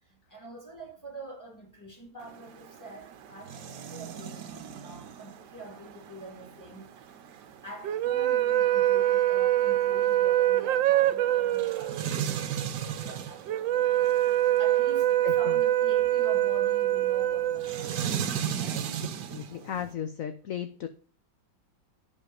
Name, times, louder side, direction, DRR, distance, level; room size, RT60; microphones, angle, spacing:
voice 1, 0.0-7.0 7.6-14.0 14.6-18.1 18.6-19.0, right 1 dB, 10° left, 3.4 m, -45 dB
sound 1, 2.2-19.9, right 8 dB, 65° right, 1.5 m, -38 dB
sound 2, 7.8-18.3, right 13 dB, 85° right, 1.5 m, -25 dB
voice 2, 15.2-15.6 19.3-20.9, left 9 dB, 55° left, 1.0 m, -35 dB
12.0 x 5.7 x 6.5 m
omnidirectional pair, 2.0 m